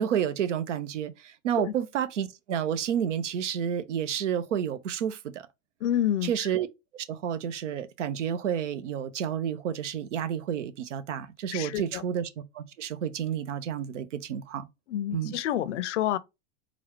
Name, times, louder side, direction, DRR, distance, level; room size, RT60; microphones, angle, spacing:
voice 1, 0.0-5.5 6.2-6.7 6.9-12.3 12.5-14.7 15.1-15.4, right 9 dB, 85° right, 0.8 m, -30 dB
voice 2, 5.8-6.3 11.5-12.0 14.9-16.2, left 11 dB, 75° left, 0.7 m, -28 dB
4.2 x 2.4 x 4.3 m
hypercardioid pair, 110°, 36 cm